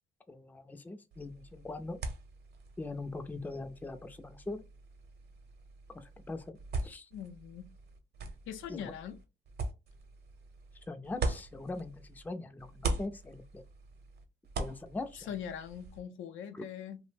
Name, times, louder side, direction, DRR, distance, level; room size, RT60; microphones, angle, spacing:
voice 1, 0.3-2.0 2.8-4.6 5.9-6.6 6.8-7.1 8.7-8.9 10.9-13.6 14.6-15.3 16.5-16.6, left 2 dB, 10° left, 0.4 m, -41 dB
sound 1, 1.1-12.3 12.6-16.0, right 3 dB, 55° right, 0.7 m, -41 dB
voice 2, 7.1-7.7 8.5-9.2 15.1-17.0, left 9 dB, 80° left, 0.5 m, -42 dB
2.6 x 2.0 x 3.3 m
cardioid pair, 90°, 20 cm